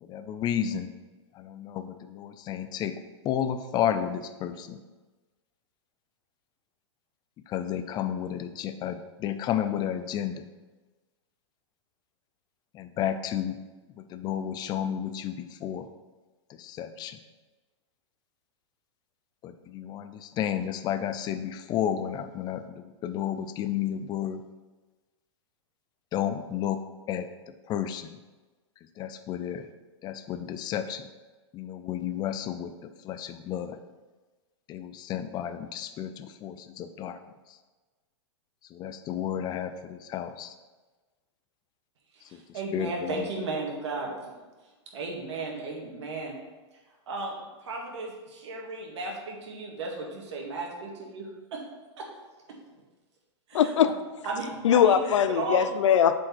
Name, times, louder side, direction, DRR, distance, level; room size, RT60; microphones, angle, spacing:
voice 1, 0.0-0.9 1.3-3.0 3.2-4.8 7.5-10.5 12.7-13.6 14.0-15.9 16.5-17.2 19.4-24.4 26.1-26.8 27.1-27.3 27.7-28.2 29.0-29.7 30.0-31.0 31.5-32.7 33.0-33.8 34.7-37.2 38.7-40.5 42.3-42.4 42.7-43.3, left 10 dB, 25° left, 10 dB, 0.5 m, -32 dB
voice 2, 42.1-44.3 44.9-46.4 47.1-47.4 47.6-51.6 52.0-52.1 52.5-52.6 53.5-53.7 54.2-54.9 55.4-55.7, right 3 dB, 70° right, -1 dB, 2.1 m, -35 dB
voice 3, 53.5-53.9 54.6-56.2, left 9 dB, 80° left, 11 dB, 0.6 m, -21 dB
7.5 x 4.6 x 4.5 m, 1.2 s
hypercardioid pair, 135°, 15 cm